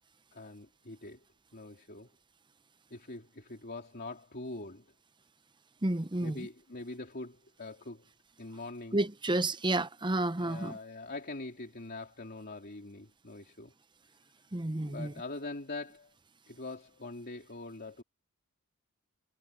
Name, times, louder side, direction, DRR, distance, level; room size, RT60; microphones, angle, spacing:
voice 1, 0.3-1.2 1.5-2.1 2.9-4.8 6.2-8.0 8.4-9.0 10.4-13.7 14.9-16.1 16.5-18.0, left 2 dB, 45° left, 2.8 m, -43 dB
voice 2, 5.8-6.5 8.9-10.8 14.5-15.1, right 2 dB, 20° right, 0.8 m, -31 dB
head